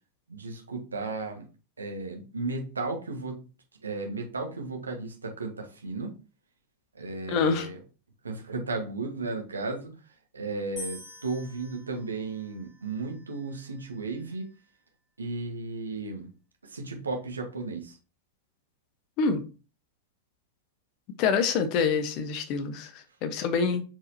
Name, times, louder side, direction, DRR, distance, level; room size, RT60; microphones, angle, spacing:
voice 1, 0.3-1.5 1.8-3.4 3.8-6.2 6.9-7.8 8.2-9.9 10.3-14.5 15.2-16.3 16.6-18.0, right 3 dB, 75° right, 1.6 m, -34 dB
voice 2, 7.3-7.7 19.2-19.4 21.2-23.8, left 5 dB, 40° left, 1.1 m, -26 dB
sound 1, 10.8-14.0, left 1 dB, 20° left, 3.9 m, -47 dB
7.6 x 4.8 x 2.8 m
figure-of-eight pair, 90°, 0 cm